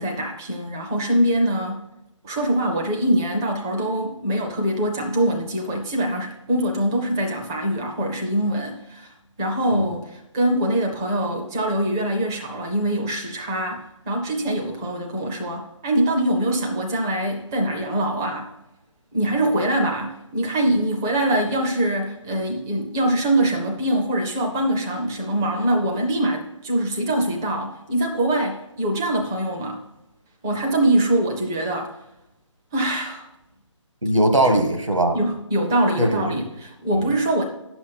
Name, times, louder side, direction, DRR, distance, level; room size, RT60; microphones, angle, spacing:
voice 1, 0.0-1.8 2.2-18.5 19.1-29.8 30.4-31.9 32.7-33.3 35.1-37.5, right 1 dB, 5° right, 2 dB, 0.4 m, -23 dB
voice 2, 34.0-35.2 36.0-36.4 36.9-37.1, right 1 dB, 80° right, 4 dB, 1.5 m, -20 dB
9.1 x 6.9 x 4.0 m, 0.90 s
figure-of-eight pair, 150°, 16 cm